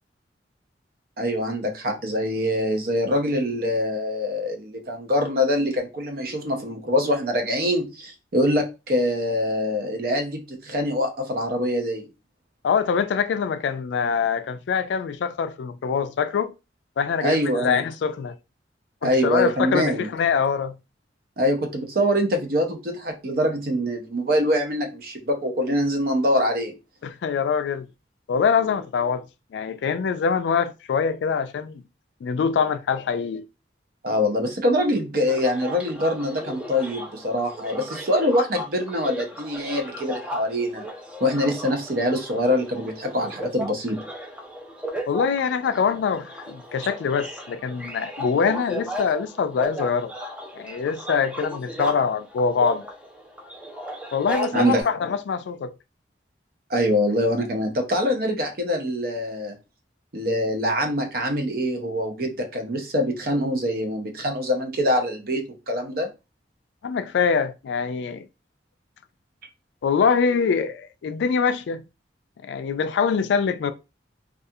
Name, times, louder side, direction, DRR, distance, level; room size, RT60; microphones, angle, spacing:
voice 1, 1.2-12.1 17.2-17.8 19.0-20.1 21.4-26.7 34.0-40.9 41.2-44.0 54.5-54.8 56.7-59.5 60.1-66.1, equal, 55° right, 0.6 m, -24 dB
voice 2, 12.6-16.5 17.0-18.4 19.0-20.8 27.0-27.9 28.3-29.2 29.5-31.8 32.2-33.5 45.1-50.1 50.6-52.8 54.1-55.7 66.8-68.3 69.8-71.8 72.4-73.7, left 6 dB, 75° left, 0.3 m, -24 dB
sound 1, 35.3-54.8, equal, 5° right, 0.4 m, -35 dB
2.3 x 2.3 x 2.6 m
head